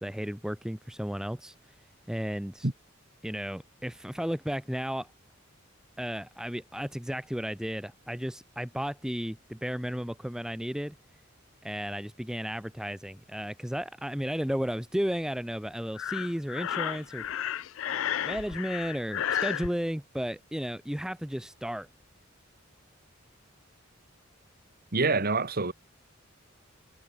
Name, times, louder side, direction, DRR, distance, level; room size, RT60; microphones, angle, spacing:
voice 1, 0.0-1.5 2.1-2.7 3.2-5.1 6.0-10.9 11.6-17.2 17.8-21.9, equal, 5° right, 0.8 m, -34 dB
Breathing, 16.0-19.7, left 10 dB, 75° left, 0.4 m, -32 dB
voice 2, 24.9-25.7, right 3 dB, 50° right, 1.7 m, -26 dB
head